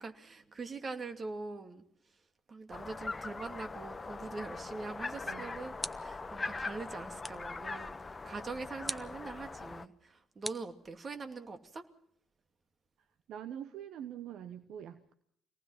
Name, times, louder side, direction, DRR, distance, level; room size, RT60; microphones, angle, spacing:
voice 1, 0.0-1.8 2.5-8.0 8.2-11.8, right 3 dB, 40° right, 7 dB, 2.5 m, -43 dB
sound 1, 2.7-9.9, left 3 dB, 25° left, 1.1 m, -41 dB
sound 2, 5.8-6.3 7.2-7.6 8.9-9.2 10.4-11.3, right 2 dB, 20° right, 1.1 m, -43 dB
voice 2, 13.3-15.1, right 10 dB, 65° right, 11 dB, 1.0 m, -44 dB
25.5 x 19.0 x 5.8 m, 0.67 s
hypercardioid pair, 50°, 0 cm